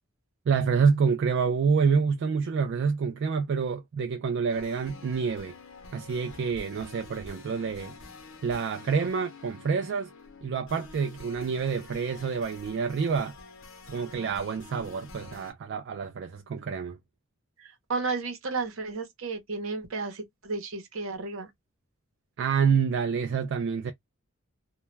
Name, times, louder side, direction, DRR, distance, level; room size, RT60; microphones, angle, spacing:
voice 1, 0.5-5.5 5.9-7.9 8.4-10.1 10.4-13.3 13.9-17.0 22.4-23.9, right 5 dB, 55° right, 0.3 m, -27 dB
sound 1, 4.5-15.5, left 3 dB, 70° left, 0.7 m, -48 dB
voice 2, 17.6-21.5, right 4 dB, 75° right, 0.8 m, -33 dB
2.2 x 2.1 x 3.1 m
head